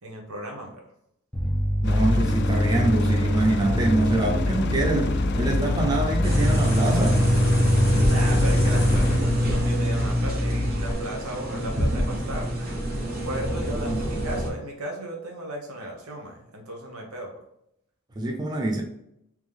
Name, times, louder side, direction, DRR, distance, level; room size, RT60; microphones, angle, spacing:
voice 1, 0.0-0.7 8.1-12.8 13.2-17.3, right 1 dB, 90° right, 1.1 m, -35 dB
Bass guitar, 1.3-10.9, equal, 5° left, 0.8 m, -26 dB
sound 1, 1.8-9.2, left 3 dB, 50° left, 0.3 m, -27 dB
voice 2, 1.8-7.3 13.8-14.0 18.2-18.8, right 2 dB, 20° right, 0.4 m, -25 dB
sound 2, 6.2-14.5, equal, 45° right, 1.3 m, -25 dB
3.4 x 3.0 x 3.5 m
head